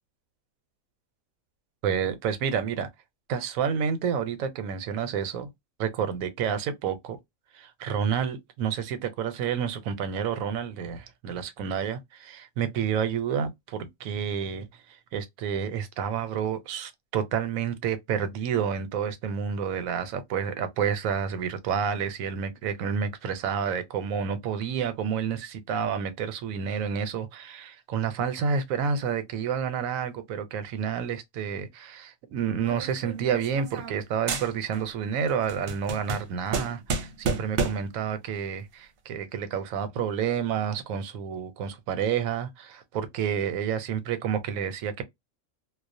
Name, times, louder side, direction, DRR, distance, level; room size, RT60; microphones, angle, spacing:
voice 1, 1.8-2.9 3.3-5.5 5.8-7.2 7.5-14.7 15.1-45.0, right 7 dB, 90° right, 1.0 m, -29 dB
sound 1, 32.6-34.0 34.3-34.9 35.3-38.0, right 4 dB, 60° right, 0.6 m, -31 dB
2.3 x 2.1 x 2.5 m
omnidirectional pair, 1.4 m